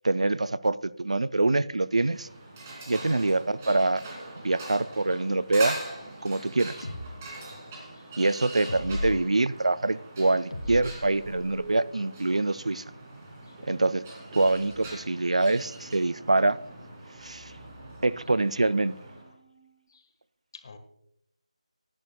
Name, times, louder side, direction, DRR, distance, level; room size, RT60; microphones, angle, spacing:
voice 1, 0.0-2.3 2.9-4.0 4.4-5.8 6.2-6.7 8.2-12.8 13.7-14.0 14.3-16.6 17.2-17.5 18.0-18.9, right 2 dB, 65° right, 17 dB, 0.4 m, -25 dB
sound 1, 1.9-19.3, right 2 dB, 20° right, 2.8 m, -43 dB
voice 2, 3.0-3.3 6.2-6.4 7.2-7.3 7.9-8.1 8.6-8.9 13.4-13.6 19.9-20.1 20.5-20.8, left 4 dB, 35° left, 7 dB, 1.5 m, -49 dB
sound 2, 6.8-7.1 8.7-9.2 10.5-11.7, left 1 dB, 70° left, 2.8 m, -35 dB
sound 3, 8.7-19.9, right 3 dB, 40° right, 4.3 m, -54 dB
20.5 x 10.5 x 2.3 m, 0.76 s
figure-of-eight pair, 160°, 4 cm